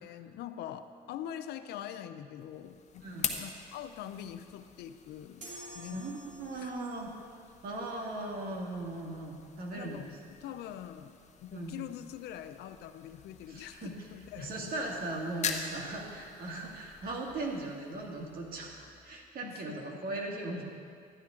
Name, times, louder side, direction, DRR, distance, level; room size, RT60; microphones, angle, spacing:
voice 1, 0.0-3.1 3.4-5.5 5.7-6.0 6.5-6.7 9.7-10.1 10.4-14.8 19.4-20.0, left 10 dB, 75° left, 10 dB, 0.6 m, -44 dB
sound 1, 2.4-19.3, left 6 dB, 40° left, 0.9 m, -44 dB
sound 2, 5.4-6.9, right 1 dB, 45° right, 2.9 m, -48 dB
voice 2, 5.9-7.1 7.6-10.1 11.5-11.8 13.5-13.9 14.4-20.6, right 2 dB, 60° right, 0 dB, 1.9 m, -38 dB
12.0 x 10.5 x 3.7 m, 2.3 s
cardioid pair, 110°, 17 cm